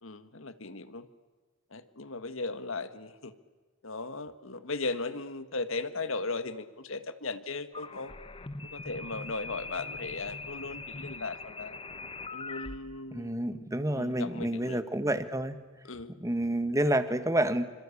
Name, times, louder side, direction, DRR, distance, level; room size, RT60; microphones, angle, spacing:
voice 1, 0.0-1.1 1.7-3.3 3.8-8.1 8.7-11.8 12.3-14.8 15.8-16.1, left 3 dB, 65° left, 12 dB, 1.7 m, -37 dB
sound 1, 7.7-12.8, left 3 dB, 25° left, 1.0 m, -41 dB
voice 2, 13.1-15.6 16.2-17.6, right 1 dB, 15° right, 11 dB, 1.6 m, -29 dB
27.0 x 25.5 x 8.5 m, 1.4 s
head